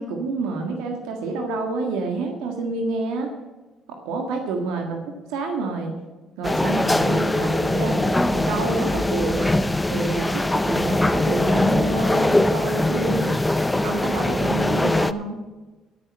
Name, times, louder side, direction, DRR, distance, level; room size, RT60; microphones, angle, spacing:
voice 1, 0.0-3.3 3.9-5.0 5.3-5.9 6.4-13.4 13.7-15.4, right 3 dB, 85° right, 3 dB, 1.6 m, -28 dB
sound 1, 6.4-15.1, left 1 dB, 10° left, 0.6 m, -22 dB
14.0 x 6.4 x 7.5 m, 1.2 s
supercardioid pair, 65°, 0 cm